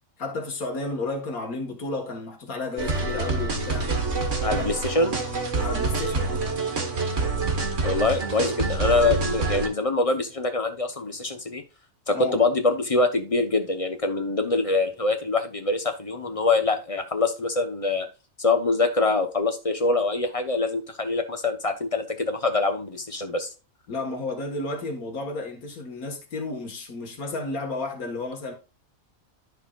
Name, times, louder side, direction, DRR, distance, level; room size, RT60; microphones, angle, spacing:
voice 1, 0.2-3.9 4.5-4.7 5.6-6.4 12.1-12.4 23.9-28.5, left 3 dB, 80° left, 2.1 m, -32 dB
sound 1, 2.8-9.7, right 3 dB, 55° right, 1.9 m, -26 dB
voice 2, 4.4-5.2 7.8-11.6 12.1-18.1 18.4-23.5, left 3 dB, 30° left, 0.9 m, -24 dB
14.0 x 4.6 x 2.4 m
omnidirectional pair, 1.5 m